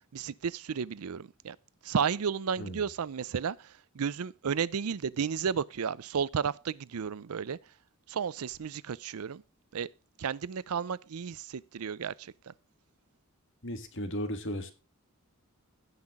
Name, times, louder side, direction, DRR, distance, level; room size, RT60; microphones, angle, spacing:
voice 1, 0.1-1.6 1.8-7.6 8.1-9.4 9.7-9.9 10.2-12.5, right 6 dB, 85° right, 0.5 m, -33 dB
voice 2, 13.6-14.7, equal, 55° left, 2.0 m, -35 dB
16.5 x 5.8 x 3.7 m
head